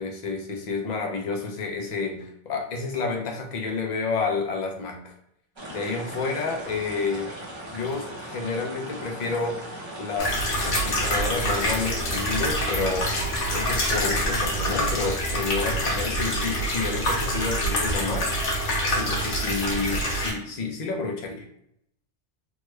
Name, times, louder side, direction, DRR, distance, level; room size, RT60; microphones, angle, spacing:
voice 1, 0.0-5.1 5.7-7.3 7.7-9.6 10.0-13.2 13.5-18.4 18.9-21.4, left 4 dB, 50° left, 2 dB, 0.6 m, -30 dB
sound 1, 5.6-15.0, right 1 dB, 30° right, 0.7 m, -39 dB
sound 2, 10.2-20.3, equal, 90° left, 1.3 m, -26 dB
3.2 x 2.2 x 3.1 m, 0.75 s
omnidirectional pair, 1.2 m